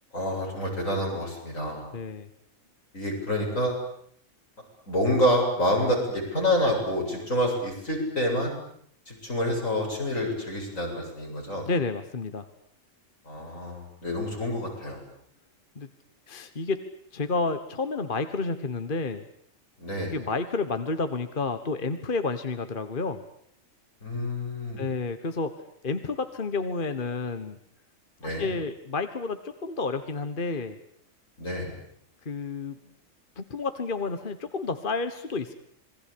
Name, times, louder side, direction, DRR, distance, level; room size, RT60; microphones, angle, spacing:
voice 1, 0.1-1.8 2.9-3.8 4.9-8.5 9.1-11.7 13.3-15.0 19.8-20.1 24.0-24.8 28.2-28.5 31.4-31.7, equal, 80° left, 0 dB, 8.6 m, -27 dB
voice 2, 1.9-2.3 11.6-12.5 15.7-15.9 16.3-16.8 17.1-19.3 20.1-23.2 24.8-25.5 25.8-27.6 28.2-30.8 32.2-32.8 33.4-35.5, left 3 dB, 40° left, 9 dB, 1.5 m, -30 dB
27.5 x 21.5 x 8.6 m, 0.65 s
omnidirectional pair, 1.4 m